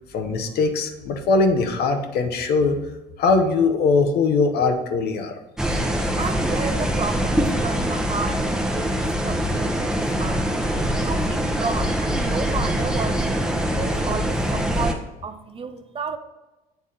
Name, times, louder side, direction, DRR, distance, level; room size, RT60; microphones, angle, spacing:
voice 1, 0.1-2.8 3.2-5.3, left 4 dB, 60° left, 6 dB, 0.9 m, -21 dB
sound 1, 5.6-14.9, equal, 5° right, 0.9 m, -23 dB
voice 2, 6.2-10.5 11.0-16.2, right 5 dB, 30° right, 9 dB, 0.6 m, -32 dB
7.9 x 3.5 x 4.2 m, 1.1 s
supercardioid pair, 80°, 18 cm